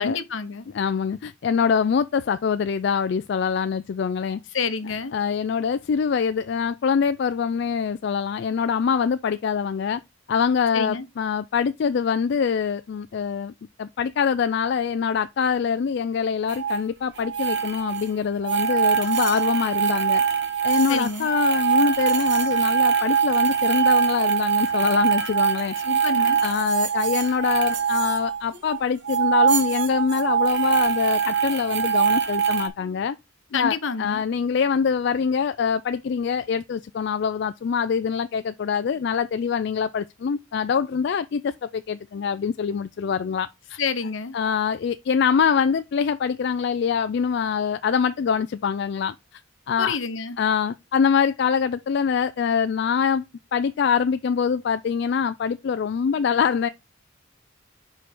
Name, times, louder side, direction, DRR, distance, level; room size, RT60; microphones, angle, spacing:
voice 1, 0.0-0.6 4.5-5.2 10.7-11.1 20.9-21.3 25.8-26.4 33.5-34.2 43.8-44.3 49.8-50.4, left 5 dB, 75° left, 0.9 m, -28 dB
voice 2, 0.7-4.4 5.1-10.0 10.3-13.5 13.8-20.2 20.6-25.7 26.2-33.2 33.5-43.8 44.3-49.1 49.7-50.0 50.4-53.2 53.5-56.7, left 6 dB, 60° left, 0.3 m, -24 dB
sound 1, 16.5-16.8 17.2-18.1 18.4-28.8 29.0-32.7, right 7 dB, 60° right, 1.2 m, -23 dB
5.1 x 4.7 x 4.4 m
head